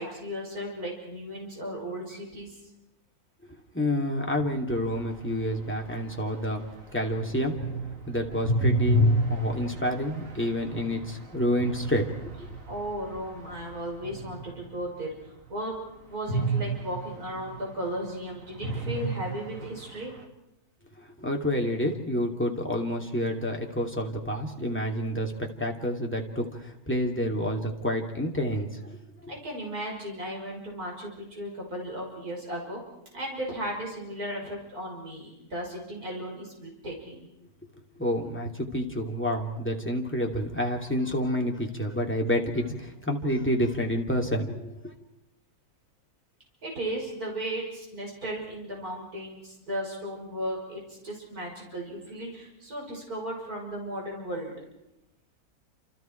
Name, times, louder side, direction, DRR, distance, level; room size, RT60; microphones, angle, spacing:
voice 1, 0.0-2.5 12.7-15.1 15.5-15.7 16.1-20.1 29.3-32.8 33.1-37.3 46.6-54.5, equal, 80° right, -2 dB, 6.3 m, -35 dB
voice 2, 3.7-6.6 6.9-7.7 8.1-12.0 21.2-25.3 25.6-29.0 29.2-29.3 38.0-44.9, equal, 5° left, 0 dB, 2.8 m, -29 dB
sound 1, 4.7-15.0 16.3-18.2 18.5-20.2, right 1 dB, 60° right, 2.5 m, -30 dB
29.0 x 28.0 x 4.7 m, 0.89 s
omnidirectional pair, 1.6 m